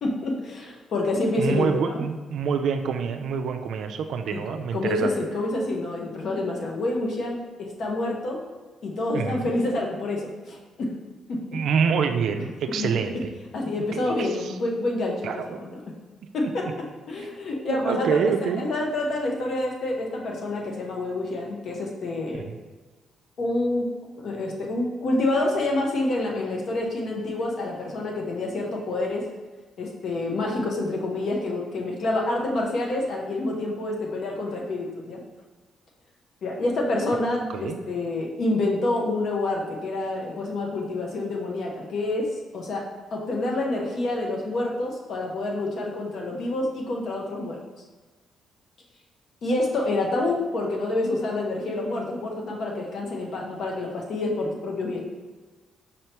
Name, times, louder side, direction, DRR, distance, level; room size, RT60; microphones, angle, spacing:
voice 1, 0.0-2.0 4.3-4.4 4.7-8.4 8.8-10.9 11.3-11.4 12.8-12.9 13.5-15.8 16.3-16.7 17.1-22.5 23.4-23.8 24.2-29.3 29.8-35.2 36.4-42.8 43.1-47.6 49.4-55.0, left 2 dB, 60° left, -1 dB, 0.8 m, -27 dB
voice 2, 1.4-5.1 9.1-9.5 11.5-13.3 13.9-14.5 15.2-15.6 17.2-17.3 17.7-18.6 22.3-22.6 37.5-37.8, right 6 dB, 70° right, 6 dB, 0.3 m, -26 dB
5.4 x 3.3 x 2.9 m, 1.3 s
cardioid pair, 90°, 0 cm